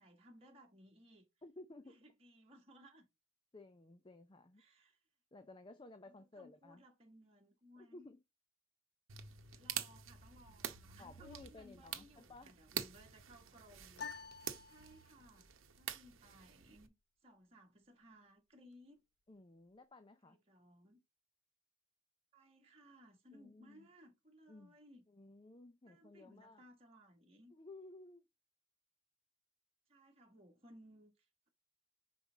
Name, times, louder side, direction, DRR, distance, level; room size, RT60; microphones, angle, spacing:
voice 1, 0.0-1.3 1.9-3.1 4.6-5.0 6.1-8.1 9.5-14.1 14.6-15.5 15.8-16.9 17.2-19.0 20.2-21.0 22.3-25.0 25.9-27.5 29.9-31.5, equal, 30° right, 1.5 m, -62 dB
voice 2, 1.4-2.0 3.5-4.6 5.3-6.8 7.8-8.2 11.0-12.5 19.3-20.4 23.3-23.9 24.5-24.8 25.1-26.6 27.5-28.2, left 2 dB, 25° left, 0.5 m, -56 dB
sound 1, 9.1-16.9, right 9 dB, 85° right, 0.9 m, -47 dB
sound 2, 14.0-15.4, left 5 dB, 55° left, 0.8 m, -49 dB
5.7 x 4.6 x 3.9 m
head